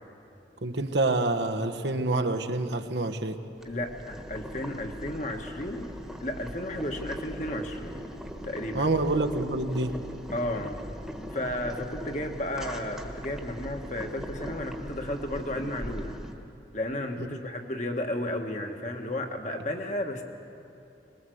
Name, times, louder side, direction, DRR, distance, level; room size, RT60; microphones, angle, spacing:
voice 1, 0.6-3.4 8.7-10.0, right 2 dB, 85° right, 5 dB, 1.2 m, -27 dB
Boiling, 3.6-16.3, equal, ahead, 1.4 m, -40 dB
voice 2, 3.7-5.9 6.2-8.1 8.4-8.9 10.3-10.8 11.3-16.2 16.7-20.2, left 1 dB, 40° left, 4 dB, 1.6 m, -33 dB
21.5 x 20.5 x 7.9 m, 2.7 s
head